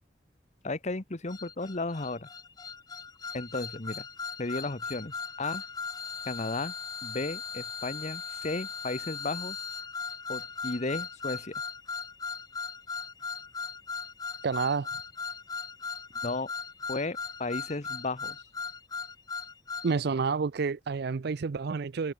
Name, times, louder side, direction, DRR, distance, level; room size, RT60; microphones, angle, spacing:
voice 1, 0.6-2.3 3.3-4.1 4.4-5.6 6.2-6.7 7.0-9.6 10.3-11.5 16.2-16.5 16.9-18.4, left 2 dB, 40° left, 1.2 m, -34 dB
sound 1, 1.3-19.9, left 5 dB, 20° left, 0.5 m, -38 dB
voice 2, 14.4-14.9 19.8-22.1, right 5 dB, 60° right, 0.5 m, -29 dB
head